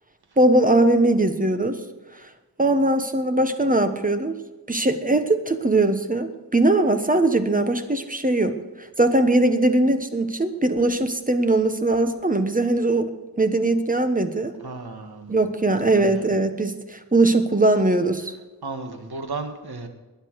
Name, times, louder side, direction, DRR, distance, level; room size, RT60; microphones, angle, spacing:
voice 1, 0.4-1.8 2.6-4.4 4.7-13.1 13.4-14.5 15.3-18.3, right 2 dB, 20° right, 8 dB, 1.2 m, -20 dB
voice 2, 14.6-15.4 15.9-16.3 18.6-19.9, right 3 dB, 65° right, 6 dB, 1.9 m, -34 dB
20.5 x 10.0 x 4.8 m, 1.2 s
wide cardioid pair, 105°, 40 cm